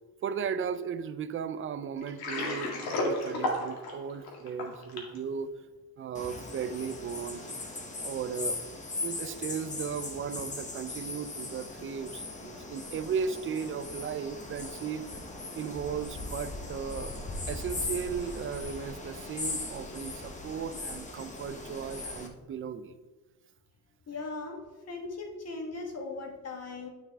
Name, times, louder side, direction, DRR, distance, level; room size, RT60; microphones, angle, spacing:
voice 1, 0.2-5.5 6.0-7.5 8.0-8.6 9.0-15.1 15.5-17.1 17.5-23.0, right 7 dB, 35° right, 12 dB, 0.5 m, -36 dB
Water, 2.0-5.2, left 2 dB, 75° left, 2.2 m, -32 dB
sound 1, 6.1-22.3, left 3 dB, 20° left, 1.0 m, -39 dB
voice 2, 24.1-26.9, left 3 dB, 40° left, 2 dB, 1.6 m, -39 dB
10.0 x 5.7 x 3.6 m, 1.2 s
cardioid pair, 125°, 38 cm